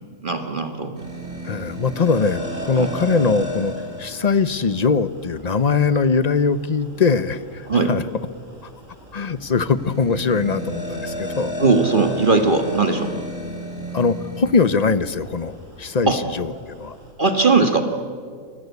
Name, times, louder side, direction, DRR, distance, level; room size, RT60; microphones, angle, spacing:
voice 1, 0.2-1.0 2.8-2.9 7.7-7.9 11.6-13.1 16.1-16.2 17.2-17.8, right 3 dB, 40° right, 6 dB, 1.7 m, -19 dB
sound 1, 1.0-17.1, equal, 65° right, 6.2 m, -34 dB
voice 2, 1.4-3.7 4.0-8.0 8.6-8.7 9.1-11.5 13.9-17.0, left 5 dB, 35° left, 14 dB, 0.8 m, -21 dB
29.0 x 23.0 x 8.3 m, 2.1 s
omnidirectional pair, 1.4 m